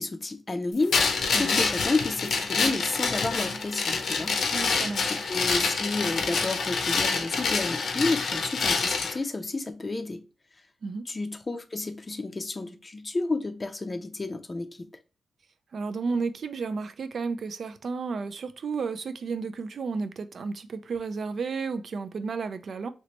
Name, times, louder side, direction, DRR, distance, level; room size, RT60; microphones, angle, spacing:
voice 1, 0.0-4.4 5.0-10.2 11.1-14.9, left 3 dB, 30° left, 0.4 m, -31 dB
sound 1, 0.9-9.2, left 4 dB, 80° left, 0.6 m, -27 dB
voice 2, 4.5-5.2 10.8-11.0 15.7-22.9, right 4 dB, 60° right, 0.3 m, -32 dB
3.1 x 3.0 x 2.8 m
wide cardioid pair, 115°, 0 cm